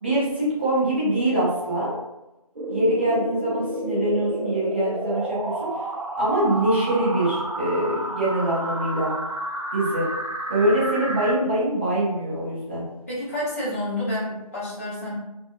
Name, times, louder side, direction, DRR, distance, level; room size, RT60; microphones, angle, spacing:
voice 1, 0.0-1.9 2.7-5.8 6.2-9.1 9.7-10.1 10.5-12.8, right 1 dB, 20° right, -8 dB, 0.6 m, -24 dB
sound 1, 2.6-11.3, right 1 dB, 60° right, 0.6 m, -30 dB
voice 2, 13.1-15.1, left 1 dB, 25° left, -8 dB, 0.6 m, -29 dB
2.8 x 2.4 x 2.4 m, 0.95 s
figure-of-eight pair, 165°, 19 cm